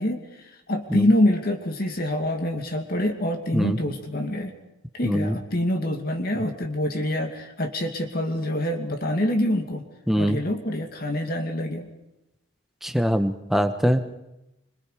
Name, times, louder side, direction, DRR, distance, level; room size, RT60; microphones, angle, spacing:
voice 1, 0.0-4.5 4.9-9.8 10.2-11.9, left 1 dB, 45° left, 4 dB, 2.4 m, -26 dB
voice 2, 5.0-5.4 10.1-10.4 12.8-14.1, equal, ahead, 7 dB, 1.2 m, -22 dB
26.0 x 25.5 x 5.1 m, 0.91 s
head